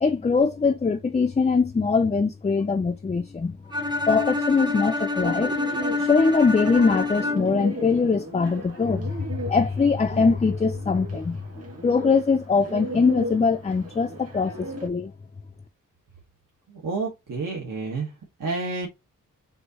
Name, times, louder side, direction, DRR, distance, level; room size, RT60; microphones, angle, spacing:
voice 1, 0.0-3.6 4.1-11.4 11.8-15.1, left 4 dB, 20° left, 0.3 m, -22 dB
Bowed string instrument, 3.7-7.7, left 2 dB, 15° right, 0.8 m, -27 dB
Bird, 5.2-14.9, right 1 dB, 45° right, 1.8 m, -37 dB
voice 2, 16.7-18.1 18.4-18.9, right 3 dB, 75° right, 1.3 m, -29 dB
6.1 x 2.6 x 2.9 m
wide cardioid pair, 125°, 33 cm